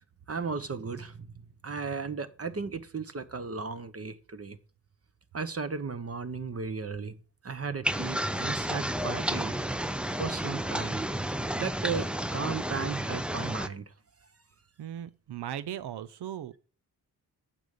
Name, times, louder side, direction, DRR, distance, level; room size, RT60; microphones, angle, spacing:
voice 1, 0.3-1.3 1.6-4.6 5.3-7.2 7.4-9.5 10.2-11.0 11.6-13.8, right 5 dB, 35° right, 1.0 m, -35 dB
sound 1, 7.8-13.7, right 1 dB, 5° right, 0.5 m, -31 dB
voice 2, 14.8-16.6, right 10 dB, 85° right, 0.6 m, -38 dB
8.9 x 6.7 x 6.6 m
wide cardioid pair, 95°, 39 cm